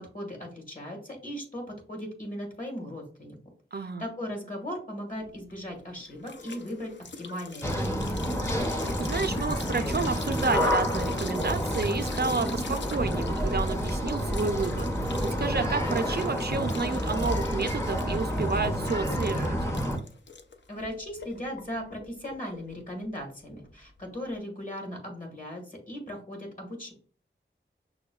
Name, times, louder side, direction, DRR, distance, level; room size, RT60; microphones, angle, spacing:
voice 1, 0.0-3.4 3.7-8.2 20.7-26.9, equal, 40° left, 1 dB, 1.5 m, -38 dB
voice 2, 3.7-4.1 9.0-19.6, right 4 dB, 55° right, 8 dB, 0.4 m, -30 dB
sound 1, 5.2-24.3, left 4 dB, 65° left, 0.5 m, -44 dB
sound 2, 7.6-20.0, equal, 15° left, 0.6 m, -29 dB
6.0 x 2.2 x 2.2 m, 0.43 s
wide cardioid pair, 50°, 20 cm